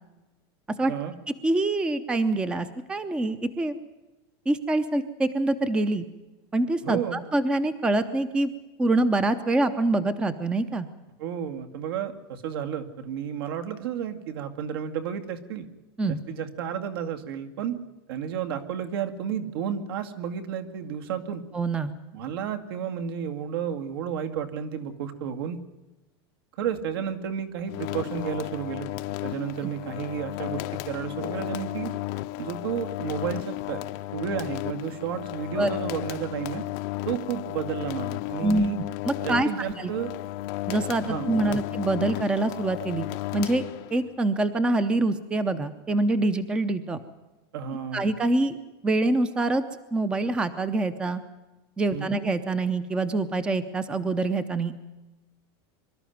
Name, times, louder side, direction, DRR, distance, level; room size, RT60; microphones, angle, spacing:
voice 1, 1.4-3.8 4.5-6.1 6.5-8.5 8.8-10.9 16.0-16.2 21.5-21.9 35.6-35.7 38.4-38.7 39.1-39.9 40.7-43.1 43.3-43.6 43.9-47.0 47.9-48.6 48.8-49.6 49.9-51.2 51.8-54.8, right 2 dB, 5° right, 12 dB, 0.7 m, -25 dB
voice 2, 6.8-7.2 11.2-15.7 16.0-17.8 18.1-21.4 22.1-25.6 26.6-28.9 29.2-31.9 32.4-36.7 37.1-38.8 39.2-40.1 41.0-41.6 47.5-48.1 51.9-52.1, right 8 dB, 65° right, 7 dB, 2.2 m, -32 dB
sound 1, 27.7-44.1, left 17 dB, 45° left, 0.7 m, -34 dB
24.0 x 13.0 x 9.2 m, 1.1 s
supercardioid pair, 175°, 13 cm